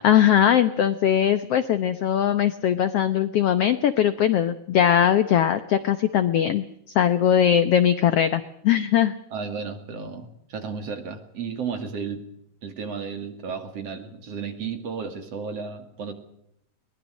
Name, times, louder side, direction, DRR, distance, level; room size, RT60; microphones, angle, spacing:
voice 1, 0.0-6.6 6.9-9.1, left 10 dB, 70° left, 11 dB, 1.5 m, -20 dB
voice 2, 9.3-12.3 12.6-16.1, right 5 dB, 50° right, 7 dB, 3.2 m, -33 dB
22.5 x 20.0 x 6.4 m, 0.76 s
omnidirectional pair, 3.8 m